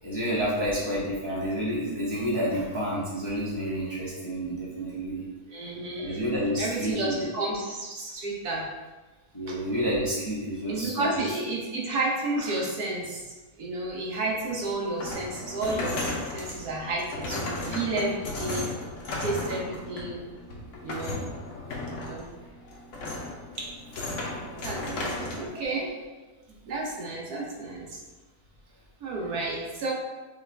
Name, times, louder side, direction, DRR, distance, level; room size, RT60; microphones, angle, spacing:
voice 1, 0.0-5.2 6.0-7.2 9.3-11.3 23.0-23.3 24.5-25.6, equal, 20° left, -8 dB, 0.8 m, -30 dB
voice 2, 5.5-6.2 6.6-8.7 9.5-9.6 10.7-13.3 13.6-18.7 19.2-20.2 20.8-21.2 22.1-22.3 23.6-23.7 24.6-25.9 26.7-28.0 29.0-29.9, right 2 dB, 80° right, -3 dB, 1.4 m, -31 dB
sound 1, 14.1-25.5, left 2 dB, 60° left, 1.1 m, -35 dB
5.5 x 2.5 x 3.2 m, 1.2 s
omnidirectional pair, 1.6 m